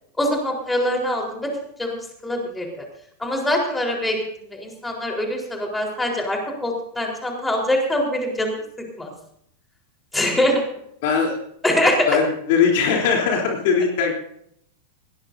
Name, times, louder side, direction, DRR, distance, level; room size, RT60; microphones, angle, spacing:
voice 1, 0.2-1.5 1.8-2.7 3.2-4.2 4.5-8.5 9.0-9.1 10.1-10.6 11.6-12.1, left 1 dB, 10° left, 1 dB, 4.2 m, -23 dB
voice 2, 11.0-11.4 12.1-14.1, left 6 dB, 50° left, 1 dB, 3.4 m, -20 dB
20.5 x 17.5 x 2.7 m, 0.71 s
figure-of-eight pair, 90°, 0 cm